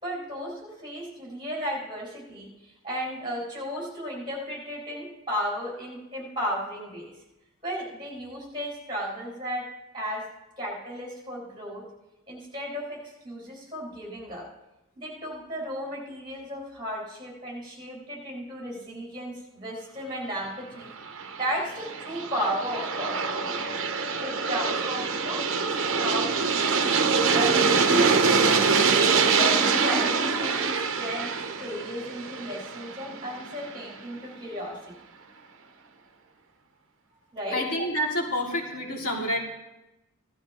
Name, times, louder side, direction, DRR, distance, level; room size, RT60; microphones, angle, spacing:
voice 1, 0.0-7.2 7.6-10.3 10.6-11.9 12.3-14.5 15.0-20.9 21.3-23.6 24.2-26.8 27.3-28.7 29.1-34.8 37.3-37.6, equal, 20° right, -3 dB, 4.4 m, -34 dB
Aircraft, 21.0-33.8, right 5 dB, 60° right, 0.9 m, -25 dB
voice 2, 37.5-39.4, equal, 80° left, -2 dB, 2.4 m, -28 dB
17.0 x 12.5 x 3.0 m, 0.96 s
head